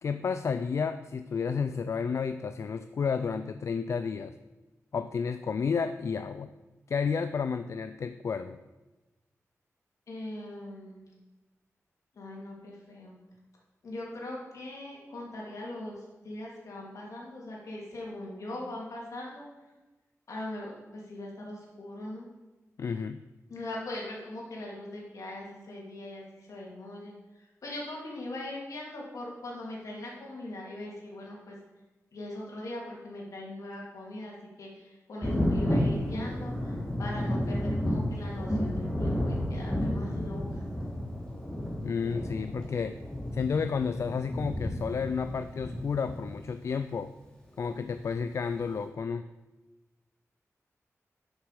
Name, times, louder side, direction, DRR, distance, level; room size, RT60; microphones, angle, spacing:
voice 1, 0.0-4.3 4.9-6.5 6.9-8.6 22.8-23.2 41.8-43.0 43.3-47.1 47.6-49.3, left 5 dB, 60° left, 10 dB, 0.3 m, -31 dB
voice 2, 10.1-11.0 12.2-13.1 13.8-19.4 20.3-22.3 23.5-31.6 32.1-40.6, left 1 dB, 80° left, -3 dB, 2.7 m, -41 dB
Thunder, 35.2-46.6 47.9-48.0 48.6-48.7, left 1 dB, 15° left, 2.0 m, -31 dB
11.0 x 6.4 x 4.9 m, 1.1 s
wide cardioid pair, 140°, 5 cm